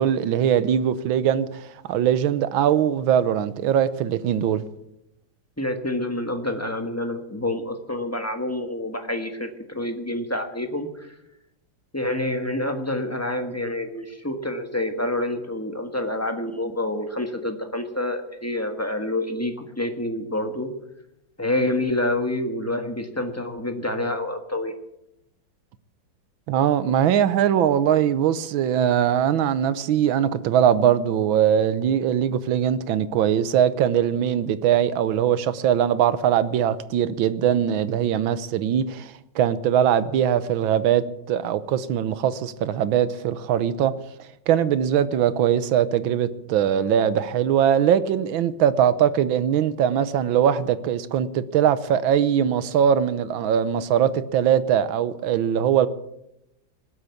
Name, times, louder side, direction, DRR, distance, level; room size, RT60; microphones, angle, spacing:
voice 1, 0.0-4.6 26.5-43.9 44.5-55.9, right 9 dB, 85° right, 1.6 m, -21 dB
voice 2, 5.6-11.1 11.9-20.7 21.4-24.7, left 1 dB, 10° left, 1.2 m, -27 dB
19.5 x 8.1 x 8.4 m
omnidirectional pair, 2.1 m